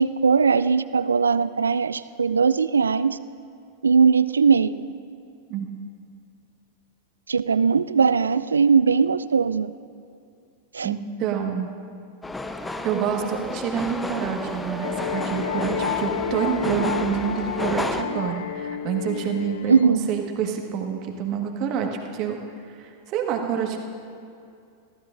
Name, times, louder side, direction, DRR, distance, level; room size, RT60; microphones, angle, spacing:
voice 1, 0.0-3.2 3.8-4.9 7.3-9.7 10.7-10.9 19.7-20.1, right 5 dB, 80° right, 16 dB, 0.3 m, -20 dB
voice 2, 10.8-11.7 12.8-22.4 22.7-23.8, right 8 dB, 45° right, 2 dB, 1.6 m, -27 dB
sound 1, 12.2-18.0, left 2 dB, 10° left, 0.7 m, -31 dB
sound 2, 14.8-19.9, left 8 dB, 65° left, 0.4 m, -30 dB
23.5 x 14.5 x 2.6 m, 2.5 s
figure-of-eight pair, 90°, 0 cm